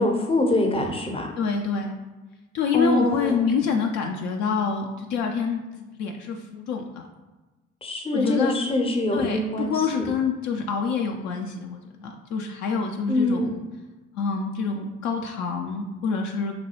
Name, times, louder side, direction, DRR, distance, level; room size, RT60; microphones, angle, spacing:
voice 1, 0.0-1.3 2.7-3.4 7.8-9.9 13.1-13.5, left 1 dB, 15° left, 2 dB, 0.7 m, -24 dB
voice 2, 1.4-1.9 2.5-5.6 6.0-6.8 8.1-8.5 9.1-13.5 14.1-16.5, left 5 dB, 55° left, 2 dB, 0.5 m, -26 dB
4.0 x 2.2 x 2.9 m, 1.2 s
hypercardioid pair, 55°, 34 cm